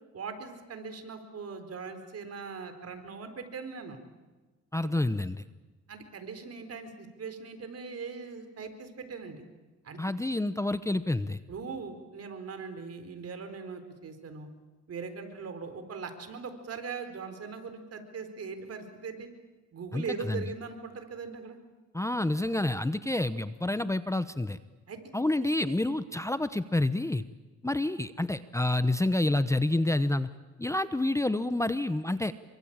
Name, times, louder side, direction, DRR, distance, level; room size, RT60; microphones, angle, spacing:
voice 1, 0.1-4.0 4.8-4.9 5.9-9.4 9.8-10.0 11.5-14.5 14.9-19.3 19.7-21.6 24.9-25.0, right 5 dB, 55° right, 8 dB, 4.4 m, -40 dB
voice 2, 4.7-5.4 10.0-11.4 19.9-20.4 21.9-24.6 25.1-27.2 27.6-30.3 30.6-32.3, left 2 dB, 10° left, 13 dB, 0.9 m, -28 dB
27.5 x 24.0 x 8.9 m, 1.2 s
cardioid pair, 90°, 30 cm